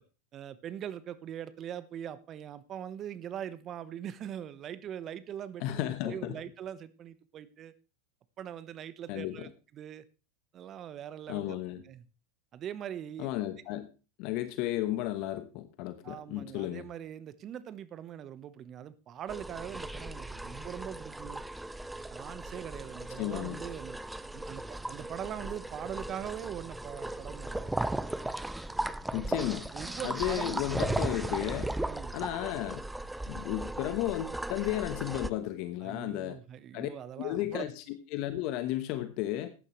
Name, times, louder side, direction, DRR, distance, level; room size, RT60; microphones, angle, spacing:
voice 1, 0.3-7.7 8.4-10.0 10.5-12.0 12.5-13.3 16.0-21.4 22.1-24.0 24.3-27.7 29.7-30.6 31.9-32.1 35.8-37.7, right 10 dB, 35° right, 1.1 m, -42 dB
voice 2, 5.6-6.4 9.1-9.5 11.3-11.8 13.2-13.9 14.2-16.9 23.2-23.6 29.1-29.7 30.0-31.7 32.1-32.8 33.3-36.4 36.7-36.9 37.2-39.5, left 14 dB, 55° left, 1.2 m, -33 dB
sound 1, 19.3-35.3, right 1 dB, 5° right, 0.6 m, -37 dB
14.5 x 11.0 x 3.2 m
hypercardioid pair, 95°, 0 cm